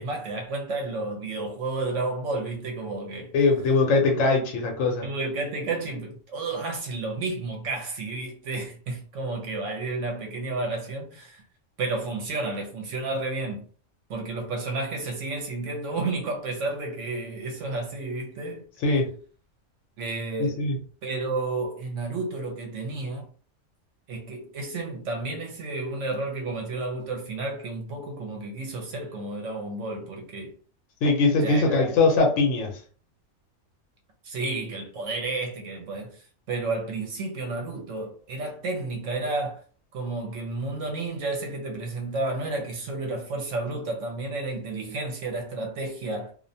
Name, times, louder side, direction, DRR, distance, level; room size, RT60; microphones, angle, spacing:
voice 1, 0.0-3.3 5.0-11.4 11.8-13.6 14.1-18.7 20.0-20.7 21.0-23.3 24.1-30.5 31.4-31.9 34.2-36.2 36.5-39.6 39.9-46.3, right 3 dB, 70° right, 0.9 m, -31 dB
voice 2, 3.3-5.1 18.8-19.1 20.4-20.8 31.0-32.8, left 3 dB, 80° left, 1.1 m, -21 dB
2.5 x 2.1 x 2.6 m
omnidirectional pair, 1.4 m